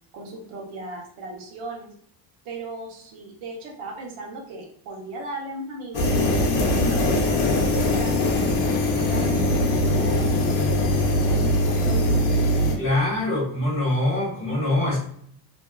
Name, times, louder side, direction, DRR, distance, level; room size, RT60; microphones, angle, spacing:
voice 1, 0.1-1.9 2.4-8.6 8.9-12.6, right 2 dB, 75° right, -2 dB, 0.9 m, -37 dB
sound 1, 5.9-12.8, left 1 dB, 55° left, 0.6 m, -21 dB
voice 2, 12.8-15.0, left 1 dB, 25° left, -5 dB, 1.2 m, -23 dB
2.6 x 2.3 x 2.3 m, 0.64 s
cardioid pair, 175°, 48 cm